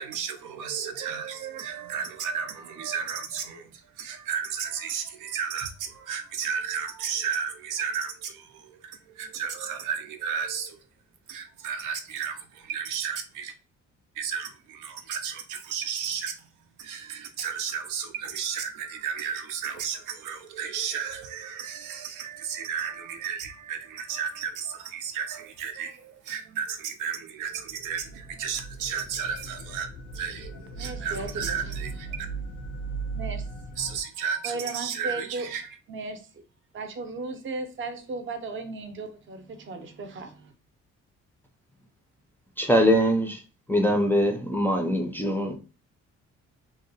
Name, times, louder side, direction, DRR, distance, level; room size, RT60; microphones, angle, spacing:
voice 1, 0.0-10.8 11.3-13.5 14.1-16.5 16.8-29.9 30.1-32.3 33.8-35.7, right 7 dB, 90° right, 0.5 m, -33 dB
sound 1, 27.5-34.0, right 3 dB, 90° left, 0.6 m, -38 dB
voice 2, 30.7-31.9 33.1-33.5 34.4-35.5 35.9-36.4 36.7-40.5, right 3 dB, 40° right, 0.6 m, -36 dB
voice 3, 42.6-43.4 43.7-45.6, equal, 5° left, 0.4 m, -22 dB
2.7 x 2.1 x 2.6 m
cardioid pair, 90°, 30 cm